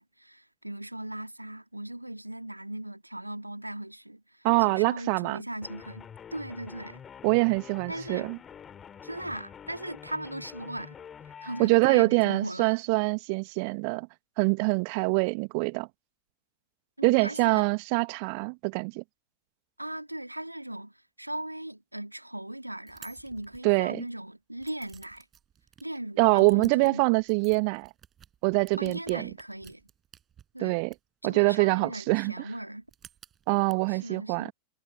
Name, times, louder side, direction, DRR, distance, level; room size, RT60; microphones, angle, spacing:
voice 1, 0.0-7.0 7.9-8.3 9.0-11.0 11.3-12.8 17.0-17.7 19.8-25.3 25.8-27.0 28.8-29.8 30.5-30.8 31.2-32.8 33.9-34.5, right 1 dB, 85° right, 2.1 m, -38 dB
voice 2, 4.4-5.4 7.2-8.4 11.6-14.1 14.4-15.9 17.0-19.0 23.6-24.0 26.2-27.9 28.4-29.3 30.6-30.9 31.2-32.3 33.5-34.5, right 38 dB, 45° right, 1.3 m, -24 dB
sound 1, 5.6-11.7, left 8 dB, 25° left, 3.5 m, -47 dB
sound 2, 22.9-24.1 24.6-25.8 26.3-31.0 32.8-33.7, right 9 dB, 25° right, 6.8 m, -54 dB
figure-of-eight pair, 90°, 0 cm